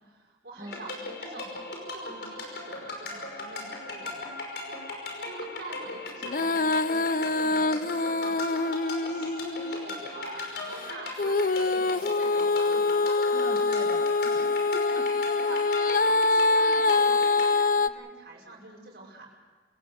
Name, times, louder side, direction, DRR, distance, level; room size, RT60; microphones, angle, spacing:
voice 1, 0.0-1.6 1.9-4.2 5.2-8.4 8.8-12.8 15.4-19.3, right 2 dB, 65° right, -4 dB, 5.7 m, -46 dB
voice 2, 0.6-0.9 13.3-15.2, right 1 dB, 20° right, 5 dB, 1.8 m, -42 dB
sound 1, 0.7-17.5, left 2 dB, 70° left, 5.5 m, -38 dB
Female singing, 6.2-10.0 11.2-17.9, left 3 dB, 50° left, 0.6 m, -25 dB
27.0 x 18.5 x 6.6 m, 1.4 s
head